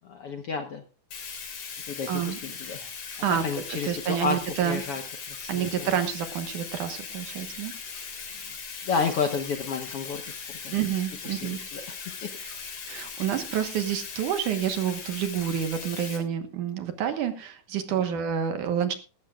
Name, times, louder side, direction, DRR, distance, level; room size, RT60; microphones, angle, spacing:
voice 1, 0.0-0.8 1.9-2.9 3.4-4.4 4.6-5.0 5.3-5.9 8.9-10.2 10.6-10.7 11.3-12.3, left 5 dB, 65° left, 5 dB, 1.5 m, -31 dB
Bathtub (filling or washing), 1.1-16.2, left 6 dB, 85° left, 5.0 m, -39 dB
voice 2, 2.1-2.4 3.2-4.8 5.5-8.0 10.7-11.6 12.4-12.6 12.9-18.9, right 9 dB, 70° right, 8 dB, 2.6 m, -29 dB
18.5 x 13.5 x 2.4 m, 0.34 s
omnidirectional pair, 3.9 m